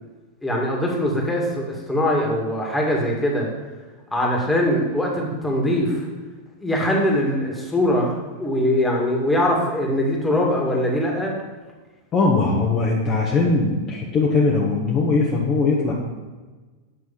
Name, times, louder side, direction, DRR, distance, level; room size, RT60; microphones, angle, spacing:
voice 1, 0.4-3.5 4.1-6.0 6.6-11.3, left 1 dB, 10° left, -1 dB, 2.2 m, -22 dB
voice 2, 12.1-15.9, left 3 dB, 30° left, -2 dB, 1.2 m, -20 dB
8.4 x 6.2 x 5.5 m, 1.3 s
figure-of-eight pair, 90°, 0 cm